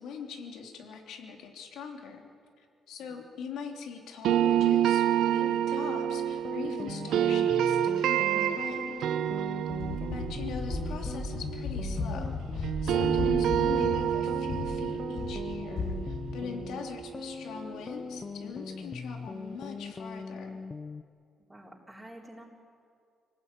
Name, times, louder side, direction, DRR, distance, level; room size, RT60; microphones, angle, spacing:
voice 1, 0.0-2.3 2.6-9.1 10.1-20.6, left 6 dB, 80° left, 2 dB, 3.1 m, -42 dB
sound 1, 4.2-12.3 12.6-17.6, right 10 dB, 80° right, 0.8 m, -28 dB
sound 2, 5.4-21.0, left 4 dB, 35° left, 0.7 m, -41 dB
sound 3, 9.7-16.9, left 3 dB, 65° left, 4.4 m, -36 dB
voice 2, 10.0-10.3 16.7-17.1 21.5-22.4, right 1 dB, 10° right, -4 dB, 3.9 m, -51 dB
25.5 x 19.0 x 9.1 m, 2.3 s
cardioid pair, 90°, 0 cm